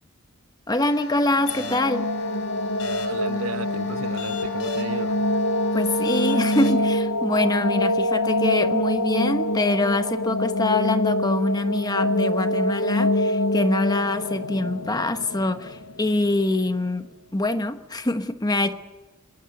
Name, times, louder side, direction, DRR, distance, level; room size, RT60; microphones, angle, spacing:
voice 1, 0.7-2.1 5.7-18.7, left 2 dB, 20° left, 1.1 m, -24 dB
sound 1, 0.8-6.7, left 4 dB, 70° left, 4.0 m, -36 dB
sound 2, 1.3-16.3, left 1 dB, 85° left, 0.9 m, -25 dB
voice 2, 3.1-5.3, right 3 dB, 75° right, 1.1 m, -33 dB
24.5 x 20.5 x 6.7 m
head